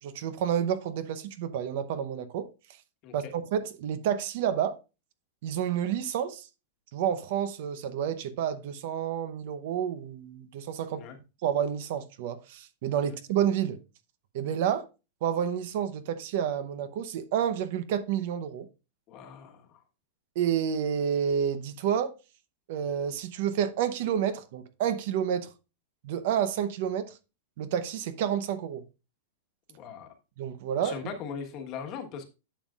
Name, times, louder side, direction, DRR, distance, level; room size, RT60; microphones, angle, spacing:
voice 1, 0.0-2.5 3.1-4.8 5.4-6.5 6.9-11.0 11.4-13.8 14.3-14.9 15.2-18.7 20.4-22.1 22.7-25.5 26.0-27.2 27.6-28.8 30.4-31.0, right 9 dB, 45° right, 0.8 m, -29 dB
voice 2, 19.1-19.8 29.8-30.1 30.8-32.2, left 6 dB, 30° left, 1.3 m, -40 dB
11.5 x 7.2 x 2.4 m
supercardioid pair, 175°, 0 cm